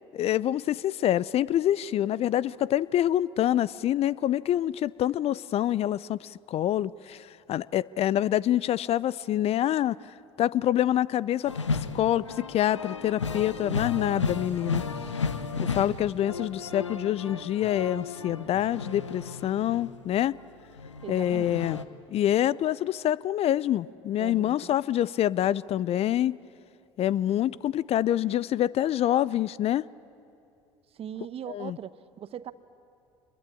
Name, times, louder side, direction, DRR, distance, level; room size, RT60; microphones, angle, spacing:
voice 1, 0.1-10.0 10.4-11.5 11.9-14.8 15.6-20.4 21.1-21.8 22.1-26.4 27.0-29.9 31.5-31.8, left 12 dB, 45° left, 21 dB, 0.5 m, -26 dB
sound 1, 11.5-20.2 20.6-21.8, left 4 dB, 90° left, 0.9 m, -34 dB
voice 2, 21.0-21.6 24.2-25.0 30.9-32.5, right 9 dB, 40° right, 14 dB, 1.0 m, -40 dB
26.5 x 22.0 x 8.5 m, 2.6 s
figure-of-eight pair, 65°, 15 cm